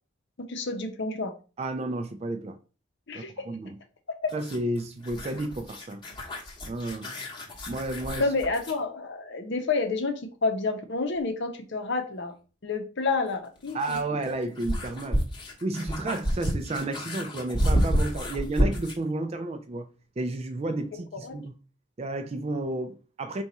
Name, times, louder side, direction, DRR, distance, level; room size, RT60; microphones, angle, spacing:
voice 1, 0.4-1.3 3.1-3.5 4.1-4.3 8.2-12.3 12.6-14.0 21.2-21.4, left 3 dB, 55° left, 0.7 m, -29 dB
voice 2, 1.6-2.6 3.1-3.7 4.3-6.0 6.7-7.1 7.7-8.3 13.7-15.3 15.6-19.9 20.2-21.6 22.0-23.4, right 2 dB, 30° right, 0.3 m, -32 dB
sound 1, 4.3-8.8 11.2-11.3 13.3-19.1, equal, 20° left, 0.8 m, -30 dB
3.8 x 2.3 x 4.1 m
head